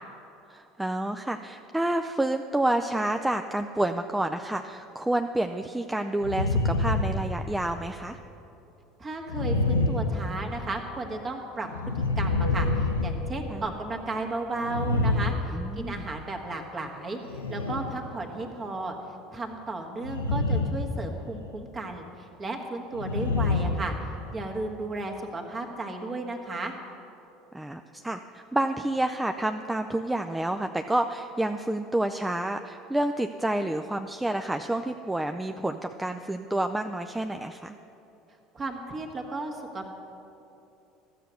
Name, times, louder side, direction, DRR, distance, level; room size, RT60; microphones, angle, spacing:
voice 1, 0.5-8.2 13.5-13.6 15.5-16.1 27.5-37.7, right 1 dB, 10° right, 6 dB, 0.4 m, -29 dB
sound 1, 6.2-7.8 9.3-10.8 11.7-13.8 14.6-16.1 17.3-18.0 20.0-20.9 21.2-21.5 22.9-24.5, left 2 dB, 85° left, 0.6 m, -27 dB
voice 2, 9.0-18.9 19.3-26.7 38.5-39.9, right 2 dB, 30° right, 2 dB, 1.4 m, -34 dB
13.0 x 6.8 x 6.3 m, 2.8 s
figure-of-eight pair, 70°, 0 cm